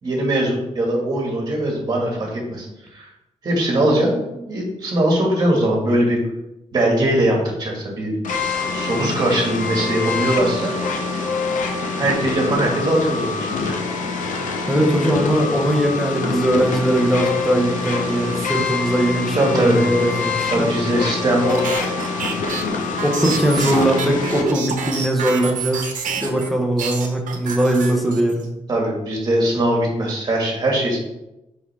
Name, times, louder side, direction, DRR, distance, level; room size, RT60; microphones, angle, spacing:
voice 1, 0.0-2.7 2.9-3.1 3.4-6.2 6.7-8.1 8.7-10.7 11.6-13.7 19.4-19.8 20.5-21.7 28.7-31.0, right 1 dB, 30° right, -1 dB, 1.7 m, -21 dB
sound 1, 8.2-24.4, left 4 dB, 90° left, 0.8 m, -25 dB
voice 2, 14.7-20.7 23.0-25.9 26.2-28.5, right 1 dB, ahead, 0 dB, 1.0 m, -20 dB
sound 2, 21.5-26.5 26.8-28.4, right 5 dB, 85° right, 0.9 m, -28 dB
5.7 x 5.3 x 3.4 m, 0.91 s
wide cardioid pair, 175°, 13 cm